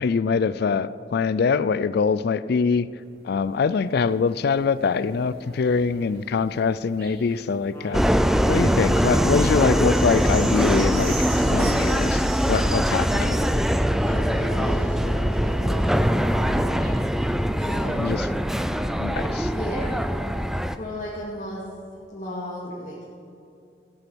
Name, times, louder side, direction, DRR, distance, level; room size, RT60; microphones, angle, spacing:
voice 1, 0.0-2.9 3.2-8.1 8.5-13.4 18.0-18.3 19.0-19.5, left 5 dB, 60° left, 16 dB, 0.4 m, -24 dB
sound 1, 3.0-18.8 19.5-19.6, right 3 dB, 60° right, 2.2 m, -44 dB
Wind instrument woodwind instrument, 7.7-12.0, equal, 15° left, 1.4 m, -39 dB
Subway metro underground, 7.9-20.8, equal, ahead, 0.4 m, -22 dB
voice 2, 14.0-16.7 17.6-18.1 19.5-20.0 20.7-21.6 22.1-23.0, left 1 dB, 40° left, -6 dB, 2.2 m, -34 dB
15.5 x 9.7 x 6.2 m, 2.5 s
head